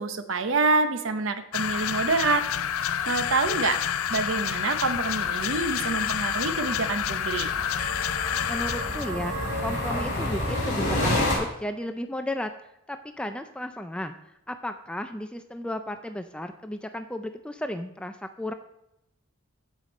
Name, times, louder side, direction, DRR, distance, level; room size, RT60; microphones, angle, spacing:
voice 1, 0.0-3.8 4.1-7.5, right 3 dB, 65° right, 10 dB, 0.8 m, -27 dB
sound 1, 1.5-9.1, left 10 dB, 75° left, 0.4 m, -29 dB
sound 2, 1.6-11.4, left 1 dB, 40° left, 3.2 m, -32 dB
voice 2, 8.5-12.5 12.9-14.1 14.5-18.5, left 1 dB, 5° left, 7 dB, 0.3 m, -34 dB
15.0 x 5.1 x 4.1 m, 0.85 s
head